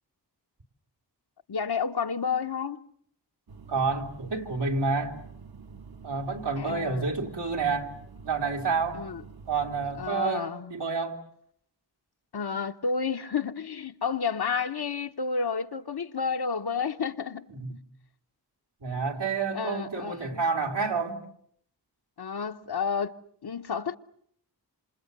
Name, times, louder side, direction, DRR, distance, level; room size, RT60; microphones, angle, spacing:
voice 1, 1.5-2.8 6.6-7.0 8.9-9.2 10.0-10.7 12.3-17.8 19.5-20.4 22.2-23.2 23.4-24.0, left 5 dB, 65° left, 1.0 m, -31 dB
sound 1, 3.5-10.1, right 5 dB, 60° right, 1.2 m, -47 dB
voice 2, 3.7-5.2 6.0-7.9 8.2-9.0 9.5-11.2 17.5-17.7 18.8-21.2, right 4 dB, 85° right, 3.1 m, -29 dB
28.0 x 27.5 x 6.8 m
wide cardioid pair, 55°, 41 cm